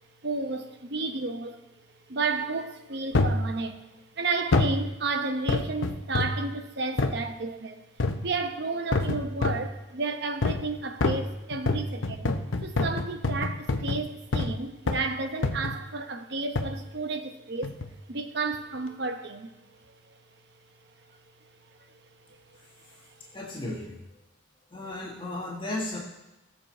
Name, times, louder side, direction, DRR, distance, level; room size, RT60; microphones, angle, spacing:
voice 1, 0.2-1.6 2.1-3.9 4.2-7.8 8.2-17.7 18.1-19.5 21.8-21.9, right 3 dB, 60° right, 1.0 m, -32 dB
sound 1, 3.1-3.5 4.5-4.8 5.5-6.4 7.0-7.2 8.0-8.3 8.9-9.7 10.4-10.7 11.0-14.6 14.9-15.1 15.4-15.8 16.6-16.8 17.6-17.9 18.5-18.6, left 2 dB, 80° left, 0.8 m, -27 dB
voice 2, 22.5-24.2 24.7-26.0, left 2 dB, 25° left, 1.6 m, -36 dB
17.5 x 7.1 x 4.4 m
head